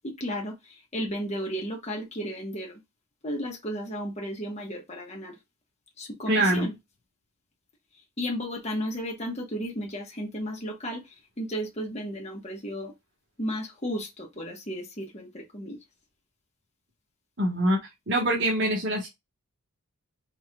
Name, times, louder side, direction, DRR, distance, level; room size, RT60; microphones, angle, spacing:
voice 1, 0.0-2.8 3.2-5.4 6.0-6.7 8.2-12.9 13.4-15.8, equal, 30° left, 1.2 m, -34 dB
voice 2, 6.3-6.7 17.4-17.8 18.1-19.1, right 1 dB, 55° right, 1.4 m, -24 dB
4.6 x 4.4 x 2.3 m
head